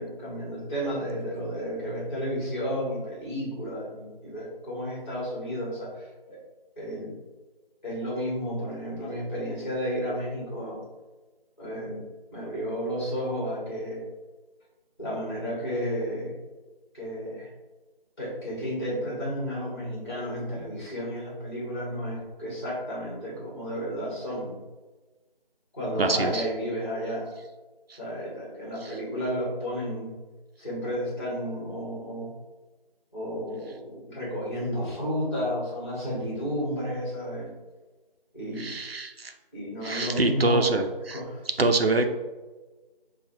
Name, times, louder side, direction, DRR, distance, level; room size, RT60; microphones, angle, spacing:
voice 1, 0.0-6.4 6.8-7.2 7.8-10.8 11.6-12.0 12.3-14.0 15.0-16.3 16.9-17.5 18.2-24.6 25.7-27.3 28.0-30.1 30.6-32.3 33.1-37.5 38.3-38.7 39.5-40.8 41.1-41.4, equal, 25° left, -7 dB, 1.5 m, -32 dB
voice 2, 26.0-26.5 27.9-28.0 38.6-39.3 39.8-41.2 41.6-42.1, right 2 dB, 75° right, 6 dB, 0.6 m, -25 dB
5.2 x 2.4 x 2.8 m, 1.2 s
figure-of-eight pair, 175°, 30 cm